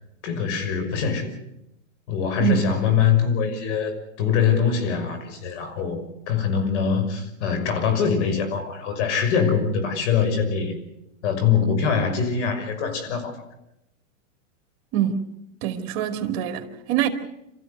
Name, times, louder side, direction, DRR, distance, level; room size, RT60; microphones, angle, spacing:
voice 1, 0.2-1.3 2.1-10.8 11.2-13.3, left 6 dB, 60° left, 6.2 m, -23 dB
voice 2, 2.4-2.7 14.9-15.2 15.6-17.1, right 10 dB, 50° right, 2.6 m, -24 dB
28.0 x 14.5 x 8.1 m
supercardioid pair, 140°, 39 cm